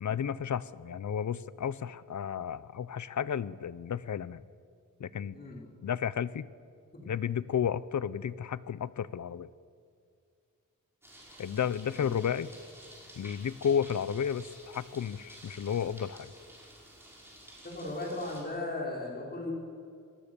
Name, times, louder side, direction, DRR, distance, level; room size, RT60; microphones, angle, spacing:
voice 1, 0.0-4.4 5.0-5.4 5.8-6.5 7.1-9.5 11.4-12.5 13.2-16.3, left 8 dB, 60° left, 18 dB, 0.7 m, -32 dB
voice 2, 5.3-5.6 6.9-7.0 11.9-12.2 17.6-19.5, left 2 dB, 30° left, -2 dB, 5.0 m, -37 dB
sound 1, 11.0-18.4, right 1 dB, 5° right, 5.7 m, -52 dB
27.0 x 20.0 x 6.9 m, 2.3 s
wide cardioid pair, 165°, 33 cm